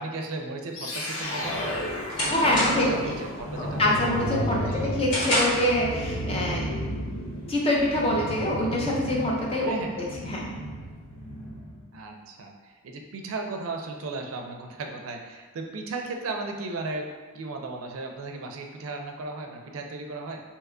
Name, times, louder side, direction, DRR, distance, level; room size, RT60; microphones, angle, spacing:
voice 1, 0.0-1.6 2.7-3.8 4.6-4.9 9.7-10.0 11.9-20.4, right 3 dB, 85° right, 3 dB, 0.4 m, -36 dB
sound 1, 0.7-11.8, equal, 90° left, 0.6 m, -33 dB
sound 2, 2.1-3.1 3.5-3.8 4.2-5.8, equal, 55° left, 1.4 m, -28 dB
voice 2, 2.3-3.2 3.6-6.7 7.5-10.5, left 1 dB, 25° left, -3 dB, 0.5 m, -25 dB
2.9 x 2.2 x 3.6 m, 1.3 s
head